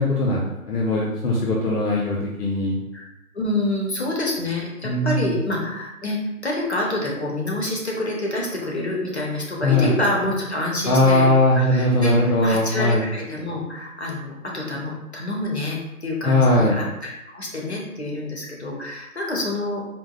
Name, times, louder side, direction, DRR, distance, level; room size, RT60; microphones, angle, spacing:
voice 1, 0.0-2.8 4.8-5.4 9.6-9.9 10.9-13.0 16.2-16.8, left 2 dB, 90° left, -3 dB, 0.8 m, -19 dB
voice 2, 3.3-11.3 11.5-19.9, left 1 dB, 45° left, -2 dB, 0.6 m, -27 dB
4.0 x 2.1 x 2.3 m, 0.94 s
hypercardioid pair, 170°, 45 cm